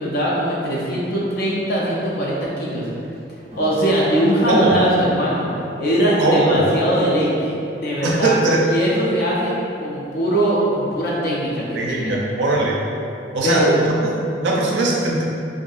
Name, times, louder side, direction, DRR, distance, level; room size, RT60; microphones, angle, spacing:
voice 1, 0.0-2.9 3.6-5.5 5.8-8.3 8.7-12.2 13.4-13.7, equal, 60° left, -5 dB, 0.4 m, -21 dB
sound 1, 3.5-6.7, right 2 dB, 35° right, 0.5 m, -42 dB
voice 2, 4.5-4.8 6.2-6.7 8.0-8.7 11.7-12.8 13.3-15.2, right 2 dB, 85° right, -2 dB, 0.4 m, -20 dB
2.6 x 2.5 x 2.3 m, 2.7 s
head